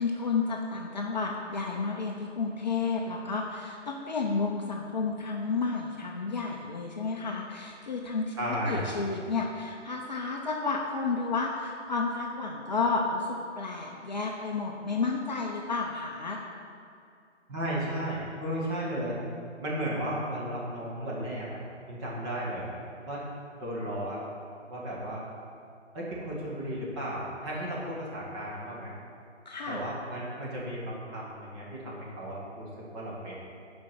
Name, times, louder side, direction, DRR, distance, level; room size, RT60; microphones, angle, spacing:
voice 1, 0.0-8.3 8.6-16.4 29.5-29.8, left 4 dB, 35° left, 0 dB, 0.7 m, -31 dB
voice 2, 8.4-8.9 17.5-19.2 19.6-21.6 21.9-22.7 23.0-23.2 23.5-24.2 24.7-25.2 25.9-28.9 29.7-33.4, right 1 dB, 25° right, -5 dB, 1.9 m, -34 dB
9.4 x 5.3 x 5.9 m, 2.4 s
figure-of-eight pair, 140°, 36 cm